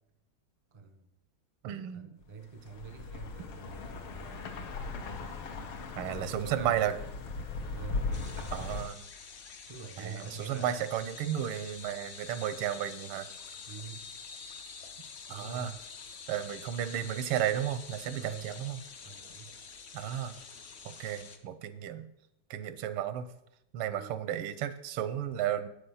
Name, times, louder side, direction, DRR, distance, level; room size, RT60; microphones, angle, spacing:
voice 1, 0.7-1.1 1.9-4.6 6.1-7.0 7.7-8.8 9.7-10.9 13.6-14.1 15.3-15.8 18.1-18.5 19.0-19.5 23.9-24.2, right 5 dB, 30° right, 6 dB, 0.5 m, -45 dB
voice 2, 1.6-2.1 6.0-6.9 8.5-9.0 10.0-13.3 15.3-15.8 16.3-18.8 19.9-20.4 20.8-22.1 22.5-23.3 23.7-25.7, right 10 dB, 90° right, 12 dB, 1.6 m, -33 dB
sound 1, 2.5-8.9, left 3 dB, 80° left, 1.8 m, -38 dB
sound 2, 8.1-21.4, left 5 dB, 65° left, 0.6 m, -47 dB
8.3 x 7.1 x 5.5 m, 0.81 s
omnidirectional pair, 2.3 m